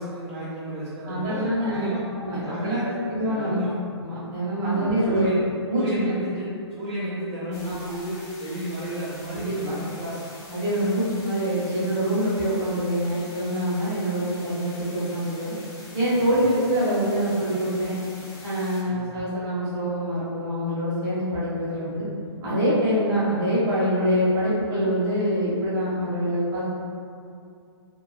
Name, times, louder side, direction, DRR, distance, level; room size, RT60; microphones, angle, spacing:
voice 1, 0.0-2.0 2.3-3.7 4.6-5.4 5.7-6.4 6.7-10.2 16.2-16.3 18.8-19.1, equal, 40° right, -10 dB, 0.7 m, -32 dB
voice 2, 1.0-2.8 3.1-3.6 4.0-5.3 5.7-6.0 7.6-7.8 9.3-9.7 10.5-15.5 15.9-18.0 18.4-22.1 22.4-26.6, equal, 25° right, -10 dB, 1.1 m, -25 dB
sound 1, 7.5-18.8, left 1 dB, 40° left, 0.9 m, -45 dB
2.5 x 2.3 x 3.1 m, 2.4 s
hypercardioid pair, 130°, 15 cm